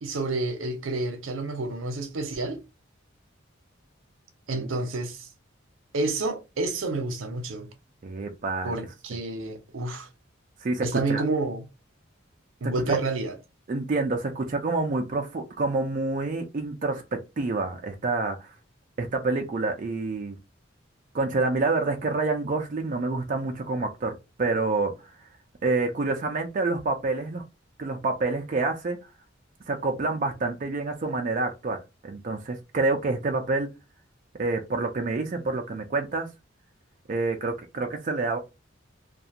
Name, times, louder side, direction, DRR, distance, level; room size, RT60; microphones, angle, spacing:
voice 1, 0.0-2.6 4.5-5.3 5.9-7.7 8.6-10.1 10.8-11.6 12.6-13.3, right 2 dB, 80° right, 0.6 m, -29 dB
voice 2, 8.0-8.7 10.6-11.2 12.6-13.0 13.7-18.5 19.0-20.4 21.1-25.1 25.6-27.4 27.8-29.0 29.7-31.8 32.0-33.7 34.4-36.3 37.1-38.4, right 3 dB, 40° right, 0.4 m, -27 dB
2.4 x 2.3 x 2.8 m
head